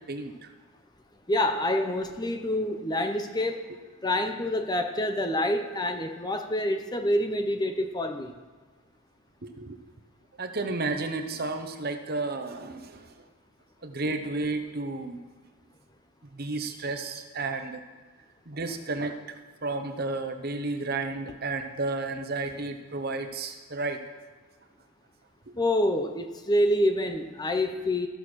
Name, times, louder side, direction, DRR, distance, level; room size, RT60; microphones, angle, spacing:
voice 1, 1.3-8.3 25.6-28.1, left 1 dB, 20° left, 6 dB, 0.7 m, -27 dB
voice 2, 9.4-9.8 10.4-13.1 13.8-15.2 16.3-17.8 18.5-19.2 19.6-24.0, right 3 dB, 45° right, 7 dB, 0.9 m, -32 dB
14.5 x 6.7 x 6.2 m, 1.4 s
head